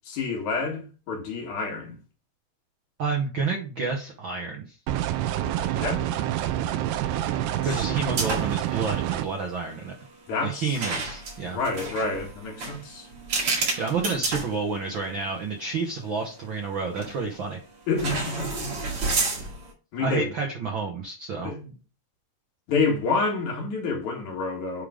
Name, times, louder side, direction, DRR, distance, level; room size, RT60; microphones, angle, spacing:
voice 1, 0.1-2.0 5.4-6.1 7.6-8.0 10.3-10.8 11.5-13.1 17.9-19.0 19.9-20.3 21.4-21.7 22.7-24.9, left 4 dB, 65° left, 3.3 m, -29 dB
voice 2, 3.0-4.7 7.6-9.9 10.4-11.6 13.8-17.6 20.0-21.5, right 4 dB, 65° right, 1.2 m, -29 dB
sound 1, 4.9-9.3, right 12 dB, 90° right, 2.3 m, -27 dB
sound 2, 8.1-8.7 8.9-9.2 10.7-15.1 15.6-15.7 16.9-17.4 18.0-19.7, right 3 dB, 45° right, 2.8 m, -30 dB
8.5 x 3.7 x 5.0 m
omnidirectional pair, 3.7 m